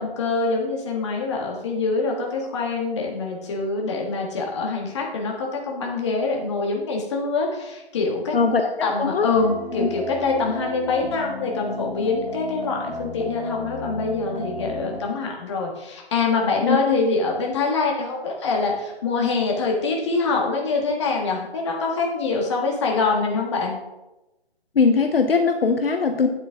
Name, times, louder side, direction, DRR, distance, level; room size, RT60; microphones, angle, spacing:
voice 1, 0.0-8.5 8.8-23.8, left 4 dB, 25° left, -1 dB, 1.7 m, -25 dB
voice 2, 8.3-9.3 16.6-16.8 24.8-26.3, left 4 dB, 65° left, 6 dB, 0.9 m, -20 dB
sound 1, 9.3-15.0, left 1 dB, 5° left, 1.1 m, -33 dB
9.8 x 7.7 x 3.7 m, 0.98 s
figure-of-eight pair, 160°, 32 cm